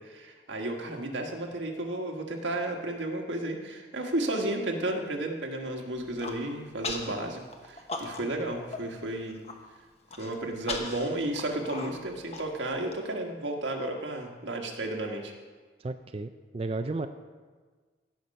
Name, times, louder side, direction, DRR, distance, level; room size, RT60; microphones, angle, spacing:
voice 1, 0.0-9.4 10.2-15.3, right 1 dB, 90° right, 2 dB, 1.6 m, -33 dB
Human voice, 6.0-6.4 6.8-7.1 7.5-8.4 8.7-8.8 9.2-9.5 10.1-12.9, left 3 dB, 35° left, 1.1 m, -37 dB
voice 2, 15.8-17.1, right 3 dB, 30° right, 8 dB, 0.4 m, -33 dB
16.5 x 6.0 x 5.3 m, 1.4 s
head